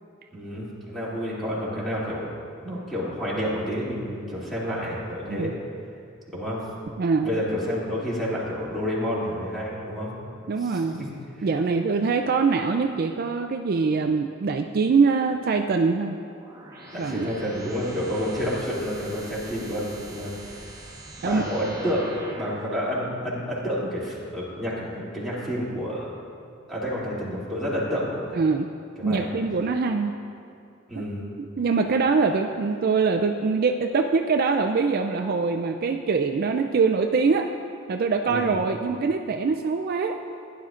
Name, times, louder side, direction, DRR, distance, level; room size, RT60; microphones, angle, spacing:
voice 1, 0.3-2.3 2.6-5.5 6.3-6.6 7.2-10.1 10.7-10.8 11.4-11.5 16.9-20.3 21.2-26.1 26.7-28.3 29.0-29.3 30.9-31.2 38.3-38.5, equal, ahead, -9 dB, 2.6 m, -29 dB
voice 2, 7.0-7.3 10.5-11.1 11.4-16.2 17.0-17.3 21.2-21.4 28.3-28.7 29.0-30.1 31.6-37.5 37.9-40.2, right 4 dB, 45° right, 4 dB, 0.4 m, -23 dB
sound 1, 16.3-22.8, right 1 dB, 15° right, 1.1 m, -42 dB
16.0 x 10.5 x 2.5 m, 2.5 s
head